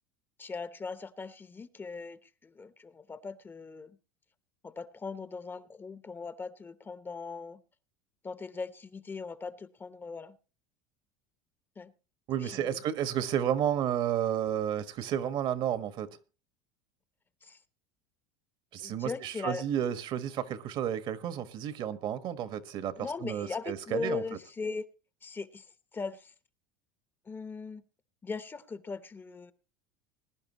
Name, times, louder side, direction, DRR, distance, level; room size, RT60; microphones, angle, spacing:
voice 1, 0.4-3.9 4.6-7.6 8.2-10.4 11.8-11.9 12.4-12.8 17.4-17.6 18.8-19.6 23.0-24.9 25.2-25.7 25.9-26.3 27.3-27.8 28.2-29.5, left 4 dB, 20° left, 0.8 m, -39 dB
voice 2, 12.3-16.1 18.7-22.9 23.2-24.2, right 10 dB, 50° right, 1.4 m, -31 dB
21.0 x 10.5 x 3.0 m
supercardioid pair, 110°, 10 cm